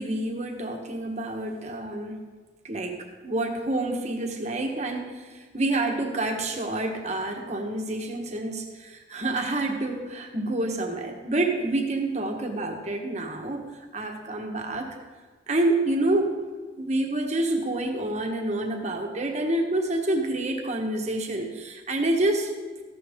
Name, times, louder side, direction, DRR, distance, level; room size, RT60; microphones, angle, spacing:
voice 1, 0.0-2.2 2.6-3.0 3.2-5.2 5.5-13.6 13.9-14.9 15.5-16.3 16.8-22.5, right 2 dB, 35° right, 3 dB, 1.3 m, -28 dB
14.0 x 12.0 x 3.7 m, 1.4 s
head